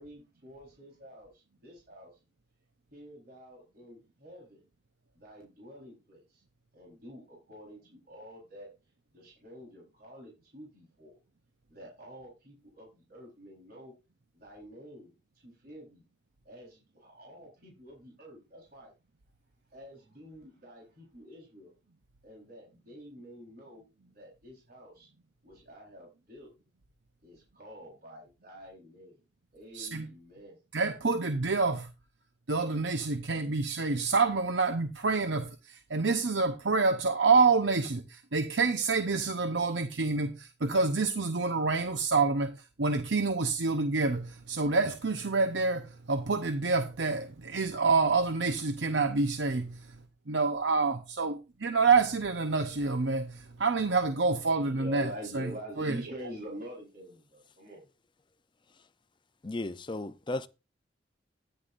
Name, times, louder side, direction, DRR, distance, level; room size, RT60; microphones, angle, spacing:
voice 1, 0.0-2.1 2.9-4.6 5.1-6.4 6.7-8.7 9.1-11.2 11.7-13.9 14.3-15.1 15.4-16.1 16.4-18.9 19.7-21.7 22.2-23.8 24.1-25.1 25.4-26.5 27.2-29.2 29.5-30.6 54.7-57.9, equal, 55° right, 4.0 m, -47 dB
voice 2, 29.7-30.1 30.7-31.9 32.5-50.0 50.3-56.0, right 4 dB, 90° right, 0.9 m, -27 dB
voice 3, 59.4-60.5, left 2 dB, 25° left, 0.6 m, -35 dB
13.5 x 10.0 x 2.6 m
head